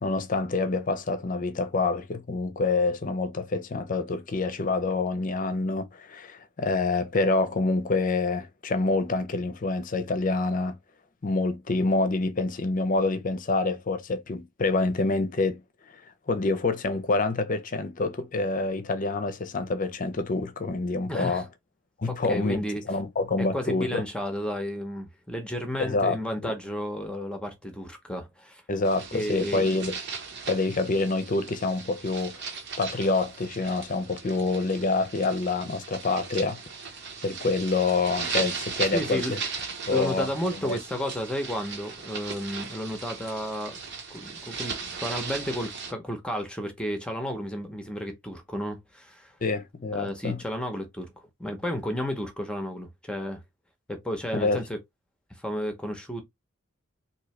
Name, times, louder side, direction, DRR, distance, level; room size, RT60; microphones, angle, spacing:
voice 1, 0.0-10.8 11.2-15.6 16.3-21.4 22.0-24.0 25.8-26.2 26.4-26.5 28.7-29.9 30.5-32.4 32.8-36.6 37.2-39.4 39.9-40.8 49.4-50.4 54.3-54.6, left 3 dB, 40° left, 0.6 m, -27 dB
voice 2, 21.1-21.4 22.1-22.8 23.4-28.6 29.1-29.7 38.9-39.4 39.9-43.8 44.1-44.8 45.0-49.3 49.9-51.1 51.4-53.4 53.9-54.8 55.4-56.2, equal, 5° left, 0.7 m, -32 dB
sound 1, 28.8-45.9, right 5 dB, 60° right, 1.2 m, -37 dB
3.9 x 2.7 x 3.1 m
head